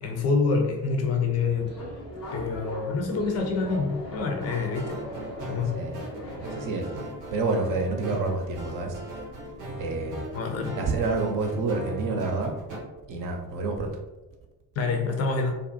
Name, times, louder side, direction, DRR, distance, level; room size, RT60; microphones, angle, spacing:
voice 1, 0.0-1.7 2.3-5.0 5.5-5.7 10.3-10.8 14.8-15.5, left 4 dB, 35° left, 3 dB, 0.6 m, -26 dB
Subway metro underground, 1.3-6.9, equal, 85° left, 1.1 m, -39 dB
sound 1, 4.4-12.8, equal, 85° right, 0.6 m, -39 dB
voice 2, 6.4-9.0 9.4-10.3 10.6-12.5 13.1-14.0, right 3 dB, 45° right, 2 dB, 0.6 m, -29 dB
2.4 x 2.1 x 2.6 m, 1.0 s
figure-of-eight pair, 40°, 46 cm